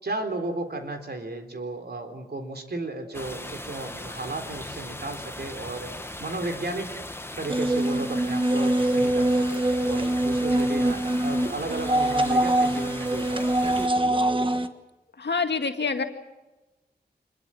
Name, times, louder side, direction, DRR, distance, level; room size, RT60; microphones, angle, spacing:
voice 1, 0.0-5.9 6.2-7.0 7.4-13.5 13.9-14.0, right 2 dB, 65° right, 5 dB, 3.8 m, -34 dB
sound 1, 3.1-13.9, left 1 dB, 15° left, 1.6 m, -38 dB
sound 2, 7.5-14.7, right 1 dB, 30° right, 1.4 m, -24 dB
voice 2, 15.2-16.0, left 4 dB, 80° left, 6 dB, 2.1 m, -26 dB
25.5 x 21.5 x 7.7 m, 1.1 s
wide cardioid pair, 80°, 18 cm